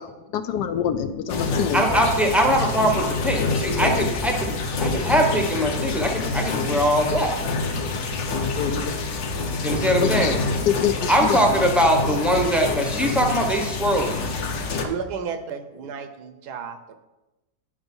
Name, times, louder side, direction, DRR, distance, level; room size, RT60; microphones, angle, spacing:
voice 1, 0.3-2.0 8.6-9.2 10.0-10.4 10.7-11.4, left 9 dB, 75° left, 10 dB, 1.1 m, -26 dB
sound 1, 1.3-14.9, left 3 dB, 55° left, 0.9 m, -27 dB
voice 2, 1.7-7.3 9.6-10.4 11.1-14.2, right 1 dB, ahead, 1 dB, 0.6 m, -22 dB
voice 3, 14.8-17.0, right 6 dB, 70° right, 9 dB, 1.2 m, -32 dB
8.8 x 5.1 x 5.3 m, 1.0 s
omnidirectional pair, 1.9 m